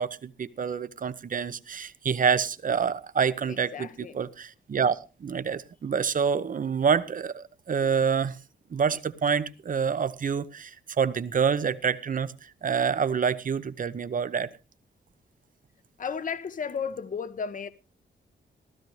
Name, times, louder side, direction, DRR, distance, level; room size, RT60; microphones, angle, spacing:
voice 1, 0.0-8.4 8.7-14.5, right 6 dB, 45° right, 0.8 m, -27 dB
voice 2, 3.5-4.1 7.8-7.9 16.0-17.7, left 6 dB, 45° left, 0.9 m, -34 dB
16.0 x 13.5 x 3.2 m
wide cardioid pair, 130°, 19 cm